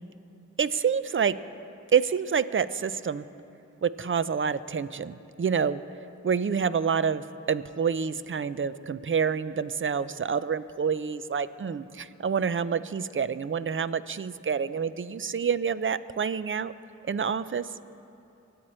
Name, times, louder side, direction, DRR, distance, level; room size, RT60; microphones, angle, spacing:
voice 1, 0.6-1.4 1.9-3.2 3.8-5.8 6.2-16.7 17.0-17.7, right 6 dB, 40° right, 15 dB, 0.5 m, -27 dB
23.5 x 8.6 x 4.4 m, 2.8 s
cardioid pair, 45°, 30 cm